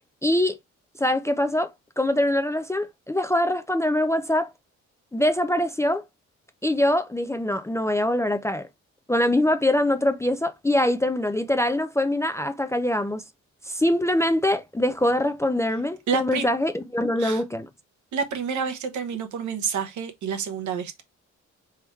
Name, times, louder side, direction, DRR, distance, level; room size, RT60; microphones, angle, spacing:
voice 1, 0.2-0.6 1.0-1.7 2.0-4.5 5.1-6.0 6.6-8.7 9.1-13.2 13.7-17.7, left 1 dB, 10° left, 0.4 m, -23 dB
voice 2, 16.1-16.4 17.2-17.4 18.1-21.0, right 6 dB, 75° right, 1.0 m, -28 dB
3.5 x 3.0 x 4.5 m
cardioid pair, 90°, 30 cm